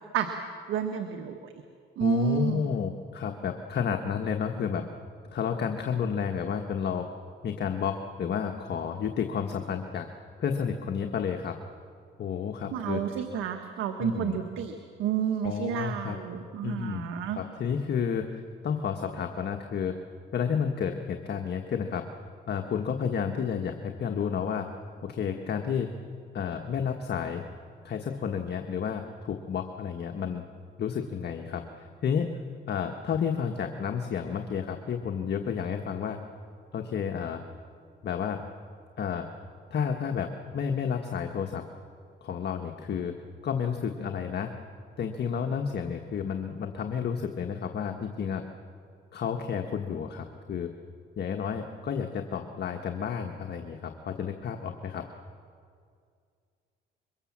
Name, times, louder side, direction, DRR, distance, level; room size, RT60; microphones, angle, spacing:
voice 1, 0.7-1.5 2.0-2.7 12.7-17.4, right 8 dB, 90° right, 6 dB, 1.4 m, -30 dB
voice 2, 2.0-4.8 5.3-7.1 7.4-10.1 10.4-11.6 12.2-13.0 14.0-14.4 15.4-16.2 16.6-17.0 17.3-20.0 20.3-22.0 22.5-24.7 25.0-25.9 26.3-27.5 27.8-30.4 30.8-32.4 32.7-36.2 36.7-37.4 38.0-38.4 39.0-39.3 39.7-41.6 42.2-43.2 43.4-44.5 45.0-48.4 49.1-50.7 51.2-55.0, left 7 dB, 55° left, 4 dB, 1.4 m, -31 dB
25.5 x 23.0 x 7.4 m, 2.2 s
cardioid pair, 90°, 20 cm